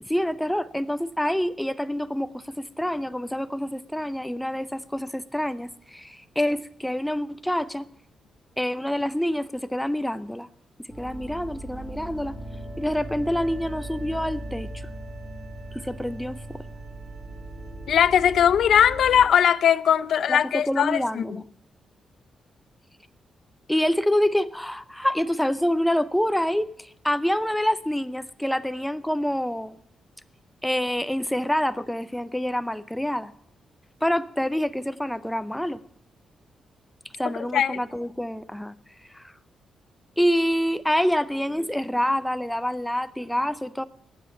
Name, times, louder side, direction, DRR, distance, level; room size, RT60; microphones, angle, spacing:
voice 1, 0.0-7.9 8.6-10.5 11.0-12.4 12.8-14.8 15.7-16.6 20.3-21.4 23.7-29.7 30.6-33.3 34.0-35.8 37.2-38.7 39.1-39.2 40.2-43.8, equal, 5° left, 0.5 m, -26 dB
sound 1, 10.9-19.3, right 1 dB, 15° right, 2.4 m, -38 dB
voice 2, 17.9-21.4 37.3-37.8, left 9 dB, 65° left, 0.4 m, -20 dB
12.5 x 8.4 x 8.2 m
wide cardioid pair, 170°, 0 cm